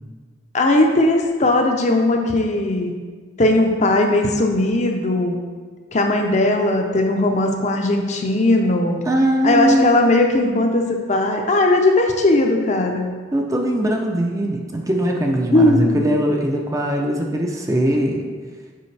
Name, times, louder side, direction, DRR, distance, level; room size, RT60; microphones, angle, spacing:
voice 1, 0.5-2.9 3.4-5.4 5.9-9.0 9.4-13.1 15.5-16.1, left 2 dB, 35° left, 2 dB, 0.5 m, -18 dB
voice 2, 9.0-9.9 10.4-10.6 13.3-18.3, right 1 dB, 15° right, 1 dB, 0.4 m, -21 dB
6.8 x 4.9 x 3.3 m, 1.5 s
head